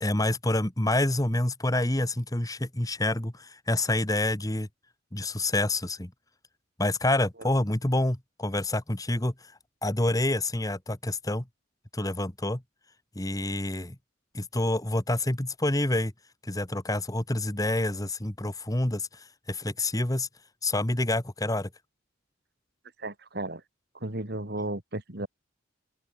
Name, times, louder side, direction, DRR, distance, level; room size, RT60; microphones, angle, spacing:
voice 1, 0.0-4.7 5.1-6.1 6.8-9.5 9.8-11.4 11.9-12.6 13.1-13.9 14.3-16.1 16.4-20.3 20.6-21.7, left 1 dB, 20° left, 1.5 m, -27 dB
voice 2, 23.0-23.6 24.0-25.3, right 1 dB, 55° right, 3.4 m, -34 dB
open air
head